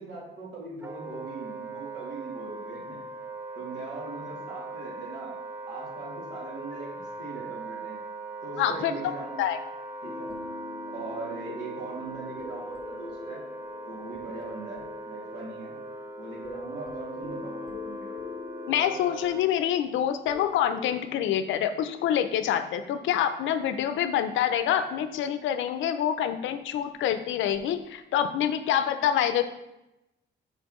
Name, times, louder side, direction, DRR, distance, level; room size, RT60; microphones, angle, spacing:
voice 1, 0.0-3.0 3.5-5.3 5.7-8.0 8.4-9.5 10.0-10.3 10.9-13.4 13.9-15.7 16.2-18.2, right 3 dB, 75° right, -4 dB, 2.4 m, -40 dB
Wind instrument woodwind instrument, 0.8-19.4, right 2 dB, 10° right, 0.3 m, -40 dB
voice 2, 8.6-9.1 9.4-9.6 18.7-29.4, left 10 dB, 80° left, 10 dB, 0.5 m, -26 dB
sound 1, 10.0-23.2 27.5-27.7, left 3 dB, 25° left, 0.7 m, -44 dB
6.3 x 5.3 x 3.1 m, 0.92 s
cardioid pair, 170°, 19 cm